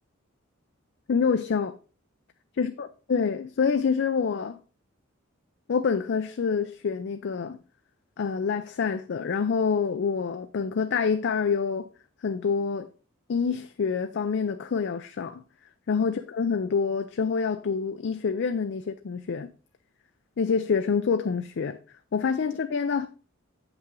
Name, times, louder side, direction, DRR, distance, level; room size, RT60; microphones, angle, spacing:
voice 1, 1.1-1.7 2.6-4.6 5.7-7.6 8.2-11.9 12.2-12.9 13.3-15.4 15.9-19.5 20.4-21.8 22.1-23.1, left 5 dB, 55° left, 0.4 m, -26 dB
7.8 x 5.6 x 3.7 m
head